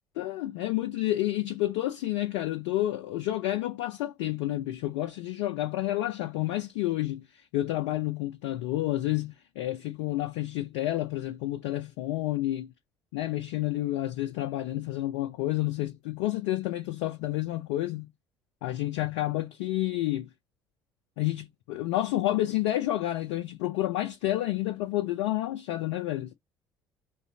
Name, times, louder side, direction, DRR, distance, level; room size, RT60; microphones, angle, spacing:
voice 1, 0.2-12.7 13.1-18.1 18.6-20.3 21.2-26.3, left 15 dB, 65° left, 0.5 m, -30 dB
3.9 x 3.1 x 2.7 m
figure-of-eight pair, 55°, 11 cm